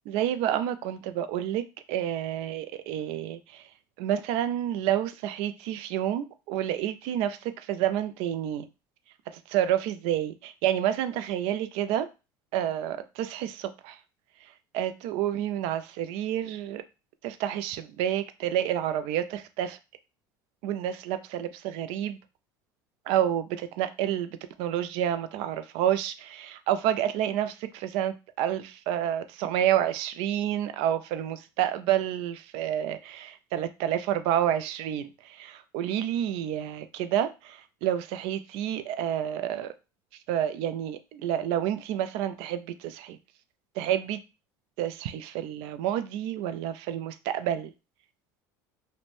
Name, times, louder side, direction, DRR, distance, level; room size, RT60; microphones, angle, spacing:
voice 1, 0.1-3.6 4.0-8.7 9.5-12.1 12.5-14.0 14.7-16.8 17.2-19.8 20.6-22.2 23.1-39.7 40.3-43.2 43.8-44.2 44.8-47.7, right 11 dB, 65° right, 0.4 m, -29 dB
2.5 x 2.1 x 3.1 m
hypercardioid pair, 85°, 11 cm